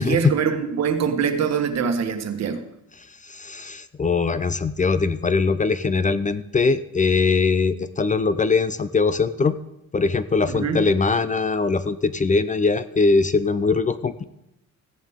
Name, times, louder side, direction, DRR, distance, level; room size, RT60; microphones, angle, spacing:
voice 1, 0.0-2.6 10.5-10.9, right 6 dB, 60° right, 7 dB, 1.4 m, -23 dB
voice 2, 3.0-9.6 9.9-14.2, left 4 dB, 25° left, 13 dB, 0.6 m, -21 dB
15.0 x 10.5 x 3.6 m, 0.84 s
cardioid pair, 90°, 30 cm